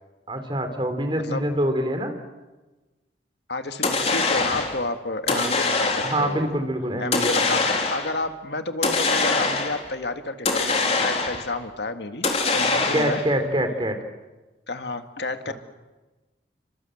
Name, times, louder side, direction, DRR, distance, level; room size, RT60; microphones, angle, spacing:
voice 1, 0.3-2.1 5.3-5.5 6.0-7.4 12.7-14.0 15.5-15.6, right 1 dB, 30° right, 7 dB, 3.6 m, -25 dB
voice 2, 3.5-6.4 7.0-12.3 12.5-13.2 14.7-15.5, left 2 dB, 75° left, 7 dB, 2.0 m, -30 dB
sound 1, 3.8-4.8 5.3-6.3 7.1-8.2 8.8-9.9 10.5-11.5 12.2-13.3, left 3 dB, 35° left, 3.6 m, -23 dB
29.5 x 25.5 x 7.9 m, 1.1 s
head